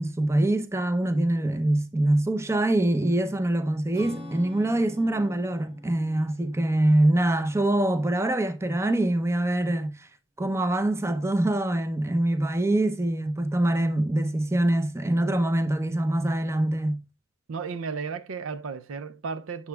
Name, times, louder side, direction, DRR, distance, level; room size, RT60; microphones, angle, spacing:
voice 1, 0.0-10.1 10.4-17.0, right 1 dB, 15° right, 0.6 m, -24 dB
Acoustic guitar / Strum, 3.9-8.7, left 1 dB, 30° right, 1.4 m, -46 dB
voice 2, 17.5-19.7, right 5 dB, 85° right, 0.5 m, -34 dB
8.7 x 6.9 x 2.3 m
head